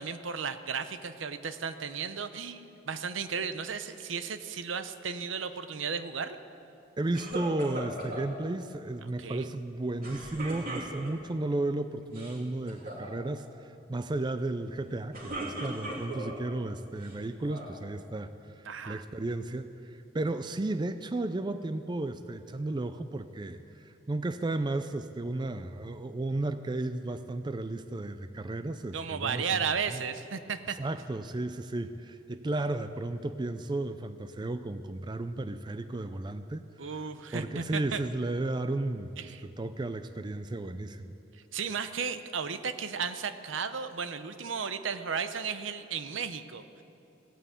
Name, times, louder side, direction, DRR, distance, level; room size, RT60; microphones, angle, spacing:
voice 1, 0.0-6.4 9.0-9.5 18.6-19.0 28.9-30.8 36.8-38.0 39.2-39.4 41.5-46.8, right 6 dB, 80° right, 10 dB, 0.7 m, -34 dB
voice 2, 7.0-18.3 18.6-29.6 29.9-30.0 30.8-36.6 37.3-41.1, right 2 dB, 25° right, 10 dB, 0.4 m, -34 dB
sound 1, 7.1-8.3 10.0-11.3 12.0-12.4 12.7-13.1 14.9-16.4 17.0-17.8, right 1 dB, 50° right, 2.7 m, -38 dB
16.5 x 9.2 x 8.3 m, 2.8 s
head